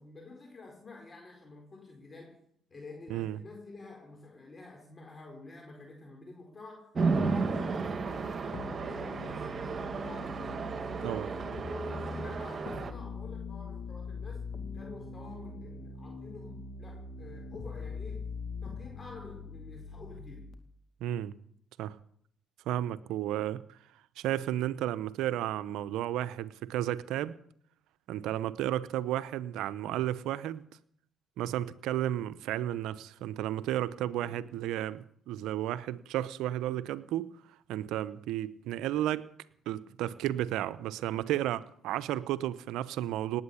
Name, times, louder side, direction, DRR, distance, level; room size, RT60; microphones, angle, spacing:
voice 1, 0.0-2.4 2.7-10.4 10.7-11.3 11.6-14.4 14.7-18.3 18.6-20.5 34.1-34.5, left 3 dB, 30° left, 4.5 m, -49 dB
Chatter / Traffic noise roadway noise / Train, 6.9-12.9, right 4 dB, 45° right, 2.1 m, -33 dB
sound 1, 8.5-20.5, left 4 dB, 55° left, 2.2 m, -42 dB
voice 2, 21.0-21.3 21.8-22.0 22.7-23.8 24.2-27.4 28.1-30.6 31.4-37.3 37.7-39.3 39.7-43.4, right 12 dB, 75° right, 0.8 m, -33 dB
18.5 x 9.0 x 8.5 m
hypercardioid pair, 60°, 0 cm